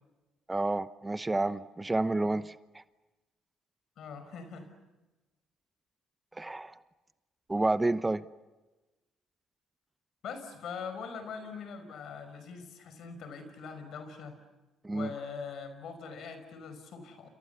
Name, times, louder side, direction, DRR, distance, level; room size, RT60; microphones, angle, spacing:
voice 1, 0.5-2.5 6.4-6.7 7.5-8.2 14.8-15.1, right 2 dB, 20° right, 14 dB, 0.9 m, -29 dB
voice 2, 4.0-4.7 10.2-14.4 14.9-17.3, left 5 dB, 65° left, 9 dB, 5.2 m, -42 dB
29.5 x 27.5 x 7.1 m, 1.1 s
hypercardioid pair, 55°, 0 cm